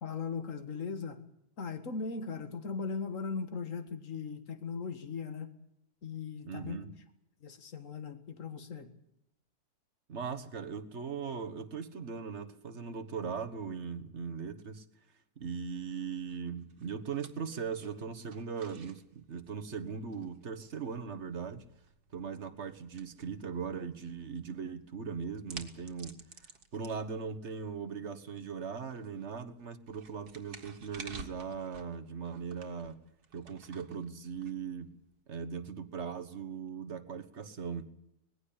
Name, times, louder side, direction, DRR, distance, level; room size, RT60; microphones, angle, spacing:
voice 1, 0.0-1.2 1.6-5.5 6.0-6.8 7.4-8.9, left 5 dB, 55° left, 9 dB, 2.1 m, -38 dB
voice 2, 6.4-6.9 10.1-14.8 15.4-21.6 22.1-26.2 26.7-33.0 33.3-34.9 35.3-37.8, right 6 dB, 45° right, 10 dB, 1.6 m, -39 dB
sound 1, 15.9-35.1, right 4 dB, 75° right, 2.3 m, -54 dB
20.0 x 16.0 x 8.7 m, 0.83 s
omnidirectional pair, 1.7 m